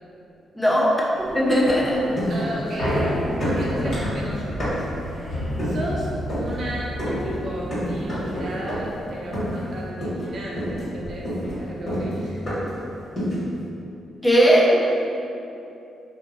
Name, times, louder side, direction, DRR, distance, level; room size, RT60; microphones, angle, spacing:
voice 1, 0.5-1.0 1.3-2.0 14.2-14.8, equal, 5° left, -4 dB, 0.4 m, -17 dB
sound 1, 1.2-9.9 10.2-10.3 10.6-12.0 12.4-12.5, equal, 55° left, 1.2 m, -31 dB
sound 2, 2.2-3.1 3.4-5.0 5.6-5.9 6.3-6.6 7.0-7.3 7.7-8.4 8.7-9.0 9.3-9.7 10.0-10.3 10.6-12.8 13.2-13.5, equal, 40° left, 1.4 m, -28 dB
voice 2, 2.3-3.2 3.5-4.7 5.6-12.5 13.3-13.4, right 1 dB, 50° right, -4 dB, 0.5 m, -34 dB
2.8 x 2.3 x 2.6 m, 2.7 s
cardioid pair, 120°, 0 cm